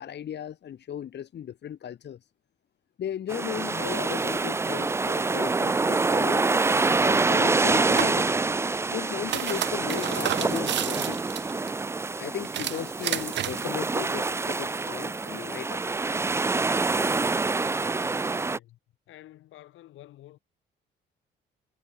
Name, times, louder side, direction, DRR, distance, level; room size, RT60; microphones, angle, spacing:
voice 1, 0.0-2.2 3.0-8.3 8.9-11.2 12.2-15.8, left 9 dB, 60° left, 2.1 m, -36 dB
sound 1, 3.3-18.6, right 3 dB, 15° right, 0.4 m, -26 dB
sound 2, 7.7-8.2 9.1-11.7 12.4-13.7, right 11 dB, 65° right, 0.9 m, -31 dB
voice 2, 17.5-18.8 19.1-20.4, left 14 dB, 85° left, 4.4 m, -50 dB
cardioid pair, 90°, 20 cm